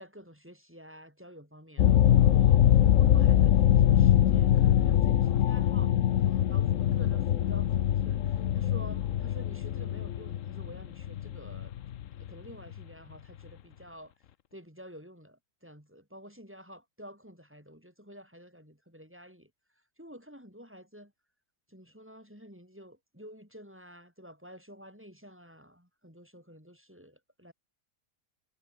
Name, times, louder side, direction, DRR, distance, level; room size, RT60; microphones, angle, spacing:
voice 1, 0.0-11.7 12.2-14.1 14.5-19.5 20.0-21.1 21.7-27.5, equal, 5° right, 8.1 m, -50 dB
sound 1, 1.8-12.8, left 11 dB, 60° left, 1.0 m, -23 dB
omnidirectional pair, 1.7 m